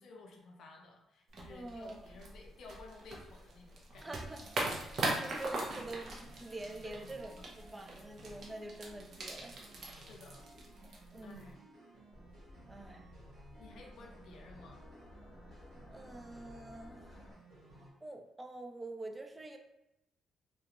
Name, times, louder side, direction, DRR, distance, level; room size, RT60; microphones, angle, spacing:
voice 1, 0.0-4.1 6.8-7.5 9.9-10.5 10.9-11.5 13.6-14.8, left 3 dB, 70° left, 0 dB, 0.5 m, -54 dB
sound 1, 1.3-11.5, right 2 dB, 60° right, 0.6 m, -41 dB
voice 2, 1.5-2.0 4.0-4.4 5.2-7.3 7.7-9.6 11.1-11.6 12.7-13.1 15.9-17.2 18.0-19.6, right 2 dB, 20° right, 4 dB, 0.4 m, -46 dB
sound 2, 3.9-17.9, right 2 dB, 85° right, 0.8 m, -58 dB
sound 3, 12.1-17.3, left 1 dB, 15° left, 0.7 m, -55 dB
2.4 x 2.2 x 2.8 m, 0.87 s
cardioid pair, 90°, 0 cm